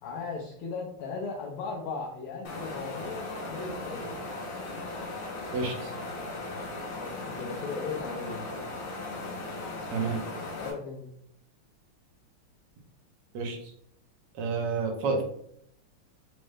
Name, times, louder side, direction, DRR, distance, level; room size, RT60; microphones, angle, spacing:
voice 1, 0.0-4.3 7.0-8.5 10.5-11.1, left 4 dB, 80° left, -2 dB, 1.5 m, -37 dB
sound 1, 2.4-10.7, left 2 dB, 65° left, 1.6 m, -37 dB
voice 2, 5.5-5.9 9.9-10.2 13.3-13.7 14.4-15.2, right 4 dB, 85° right, 1 dB, 1.8 m, -30 dB
5.0 x 2.1 x 3.2 m, 0.69 s
omnidirectional pair, 2.4 m